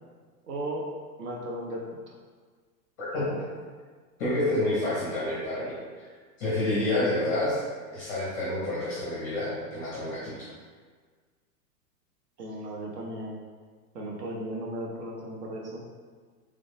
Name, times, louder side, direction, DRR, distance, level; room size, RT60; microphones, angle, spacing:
voice 1, 0.4-0.9 1.2-2.1 12.4-13.4 13.9-15.8, right 1 dB, 75° right, -1 dB, 1.2 m, -36 dB
voice 2, 3.0-3.4 4.2-6.1 6.4-7.6 7.9-10.5, left 1 dB, 10° left, -8 dB, 0.5 m, -29 dB
3.7 x 3.3 x 3.9 m, 1.6 s
supercardioid pair, 170°, 48 cm